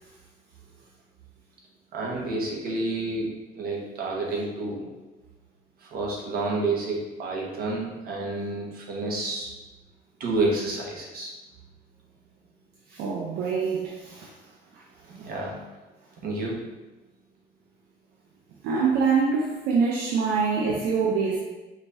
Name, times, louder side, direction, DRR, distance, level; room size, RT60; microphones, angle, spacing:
voice 1, 1.9-3.3 3.5-4.9 5.8-9.5 10.2-11.3 15.1-15.6 16.2-16.6, right 2 dB, 65° right, -2 dB, 1.3 m, -29 dB
voice 2, 12.9-14.3 14.7-14.8 18.6-21.4, right 5 dB, 80° right, -2 dB, 0.6 m, -25 dB
5.0 x 2.7 x 3.4 m, 1.1 s
cardioid pair, 110°, 17 cm